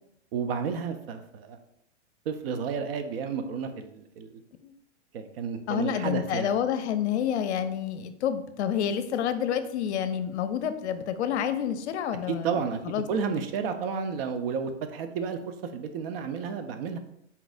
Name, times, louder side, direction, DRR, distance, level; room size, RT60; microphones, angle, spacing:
voice 1, 0.3-1.6 2.3-4.4 5.1-6.5 12.3-17.0, right 6 dB, 55° right, 8 dB, 0.6 m, -31 dB
voice 2, 5.7-12.5 12.8-13.1, left 9 dB, 70° left, 11 dB, 0.5 m, -28 dB
4.1 x 4.0 x 2.5 m, 0.78 s
hypercardioid pair, 135°, 36 cm